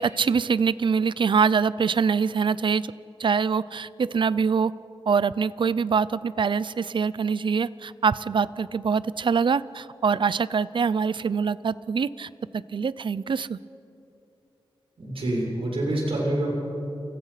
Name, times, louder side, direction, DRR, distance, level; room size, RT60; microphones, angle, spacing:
voice 1, 0.0-2.9 3.2-4.7 5.1-13.6, right 5 dB, 60° right, 18 dB, 0.6 m, -24 dB
voice 2, 15.0-16.5, right 1 dB, 80° right, -1 dB, 7.1 m, -26 dB
29.5 x 29.5 x 6.0 m, 2.7 s
wide cardioid pair, 110°, 9 cm